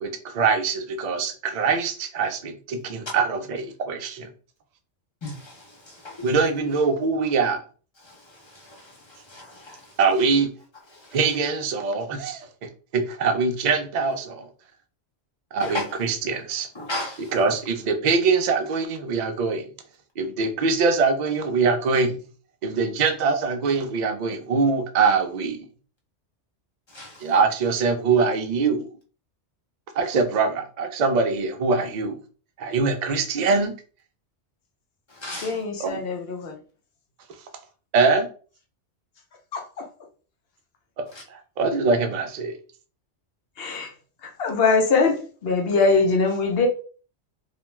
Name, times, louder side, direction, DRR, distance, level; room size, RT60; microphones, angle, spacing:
voice 1, 0.0-4.3 6.2-7.6 10.0-10.5 11.1-14.5 15.5-16.7 17.2-19.7 20.2-22.2 22.6-25.7 27.2-28.9 30.0-32.2 32.6-33.7 35.8-36.0 37.9-38.3 41.0-41.1 41.3-42.6, right 4 dB, 60° right, 0.4 m, -23 dB
voice 2, 5.2-5.5 6.0-6.5 9.3-9.8 15.6-15.8 16.8-17.2 26.9-27.1 35.2-35.5, left 1 dB, 30° left, 0.6 m, -33 dB
voice 3, 35.4-36.6 39.5-39.9 43.6-43.9 44.2-46.7, left 4 dB, 65° left, 0.8 m, -22 dB
2.3 x 2.2 x 3.0 m
omnidirectional pair, 1.2 m